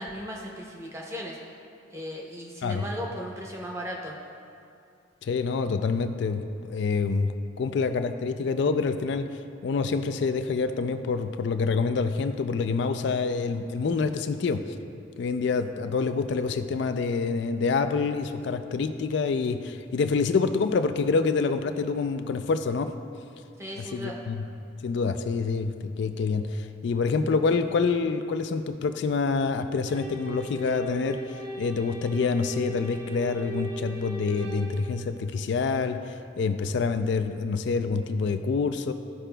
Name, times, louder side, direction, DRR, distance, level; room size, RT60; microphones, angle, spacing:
voice 1, 0.0-1.4 1.9-4.1 23.6-24.2, equal, 15° right, -2 dB, 0.7 m, -36 dB
voice 2, 5.2-7.3 7.6-14.7 15.2-22.9 23.8-24.4 24.8-38.9, left 4 dB, 60° left, 8 dB, 0.3 m, -27 dB
sound 1, 29.9-34.9, right 2 dB, 70° right, 1.4 m, -38 dB
13.5 x 4.9 x 2.2 m, 2.5 s
head